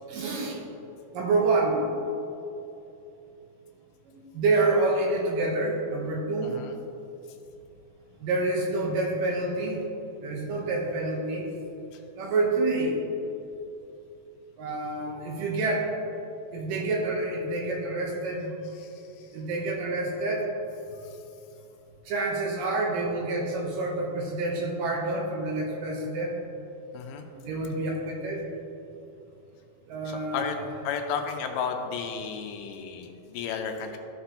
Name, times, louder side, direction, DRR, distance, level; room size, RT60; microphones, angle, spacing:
voice 1, 0.1-0.6 1.1-1.8 4.1-6.5 8.2-9.8 10.2-11.5 12.2-13.0 14.6-15.9 16.5-18.5 19.3-20.5 22.1-26.3 27.3-28.5 29.9-30.7, right 2 dB, 75° right, -1 dB, 2.3 m, -28 dB
voice 2, 6.4-6.7 11.9-12.0 18.8-19.3 21.0-21.2 26.9-27.3 30.1-30.6 30.8-34.0, left 6 dB, 85° left, 4 dB, 2.5 m, -33 dB
14.0 x 6.0 x 2.8 m, 2.8 s
omnidirectional pair, 4.5 m